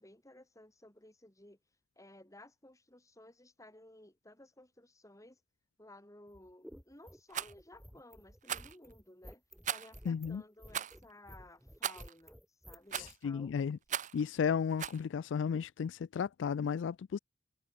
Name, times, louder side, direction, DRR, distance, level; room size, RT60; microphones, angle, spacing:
voice 1, 0.0-1.6 2.0-5.4 5.8-13.6, left 1 dB, 15° left, 4.9 m, -57 dB
sound 1, 6.3-13.1, equal, ahead, 1.5 m, -54 dB
Rattle, 7.3-7.5 8.4-8.8 9.6-10.0 10.7-11.0 11.8-12.1 12.9-13.2 13.9-14.2 14.8-15.0, right 9 dB, 40° right, 0.7 m, -38 dB
voice 2, 10.1-10.4 13.0-13.8 14.1-17.2, left 6 dB, 70° left, 0.3 m, -34 dB
head